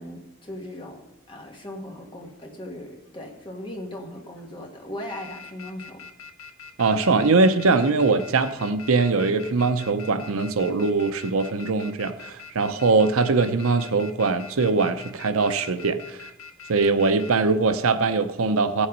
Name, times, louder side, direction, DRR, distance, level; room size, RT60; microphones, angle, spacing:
voice 1, 0.0-6.0, left 1 dB, 20° left, 1 dB, 1.4 m, -38 dB
sound 1, 2.0-2.4 3.0-3.7 4.2-4.5 4.8-17.3, left 6 dB, 75° left, 0.9 m, -43 dB
voice 2, 6.8-16.3 16.7-18.9, right 3 dB, 75° right, 10 dB, 0.7 m, -22 dB
15.0 x 7.1 x 5.4 m, 0.96 s
head